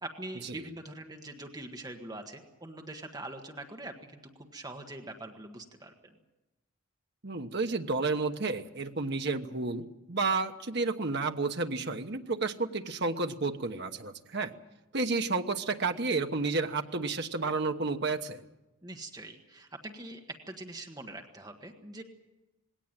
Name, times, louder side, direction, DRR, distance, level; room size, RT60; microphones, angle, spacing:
voice 1, 0.0-6.1 18.8-22.0, right 2 dB, 20° right, 3 dB, 1.4 m, -43 dB
voice 2, 7.2-14.5 14.9-18.4, right 3 dB, 50° right, 6 dB, 1.1 m, -31 dB
20.5 x 17.5 x 9.0 m, 1.0 s
head